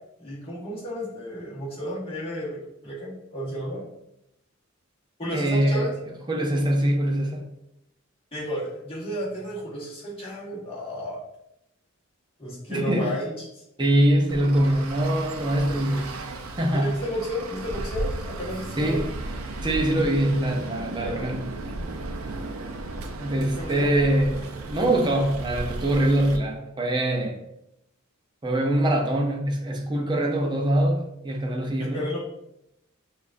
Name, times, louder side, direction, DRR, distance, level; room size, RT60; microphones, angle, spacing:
voice 1, 0.2-3.8 5.2-5.9 8.3-11.2 12.4-13.6 16.7-19.0 20.9-21.3 23.6-23.9 31.9-32.2, equal, 25° left, -6 dB, 1.3 m, -32 dB
voice 2, 5.3-5.9 6.3-7.4 12.7-13.1 13.8-16.1 16.6-17.0 18.8-19.1 19.6-21.4 23.2-27.4 28.4-32.1, right 1 dB, 20° right, 1 dB, 0.6 m, -23 dB
Traffic noise roadway noise, 14.3-26.4, right 2 dB, 85° right, 0.5 m, -35 dB
6.3 x 2.4 x 2.5 m, 0.85 s
head